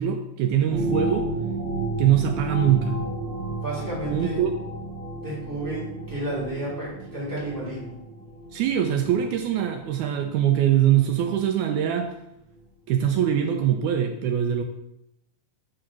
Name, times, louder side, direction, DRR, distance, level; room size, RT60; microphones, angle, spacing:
voice 1, 0.0-1.3 2.0-3.0 4.1-4.5 8.5-12.1 12.9-14.6, right 10 dB, 80° right, 5 dB, 1.7 m, -23 dB
sound 1, 0.7-11.3 11.8-11.9, right 1 dB, 55° right, 2.8 m, -33 dB
voice 2, 3.5-4.4 5.2-8.0, right 1 dB, 5° right, -7 dB, 2.2 m, -32 dB
5.0 x 4.9 x 5.9 m, 0.83 s
omnidirectional pair, 3.9 m